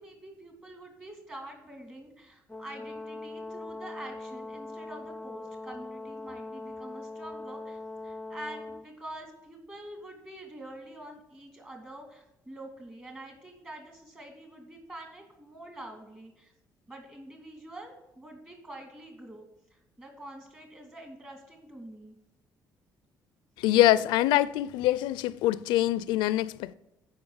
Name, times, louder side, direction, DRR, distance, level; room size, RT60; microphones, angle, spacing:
voice 1, 0.0-16.5 16.9-19.5 19.7-22.2, right 1 dB, 25° right, 2.5 m, -46 dB
Brass instrument, 2.5-8.9, left 2 dB, 10° left, 0.5 m, -41 dB
voice 2, 23.6-26.7, left 14 dB, 85° left, 0.4 m, -24 dB
9.6 x 5.2 x 8.1 m
supercardioid pair, 75°, 8 cm